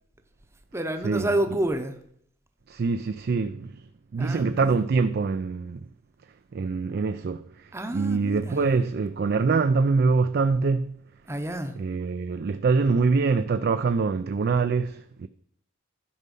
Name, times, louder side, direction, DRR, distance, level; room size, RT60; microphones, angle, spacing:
voice 1, 0.7-2.0 4.2-4.8 7.7-8.7 11.3-11.8, right 1 dB, 15° right, 0.7 m, -29 dB
voice 2, 2.7-5.9 6.5-11.0 11.8-15.3, right 4 dB, 50° right, 0.4 m, -24 dB
11.5 x 5.5 x 5.4 m
head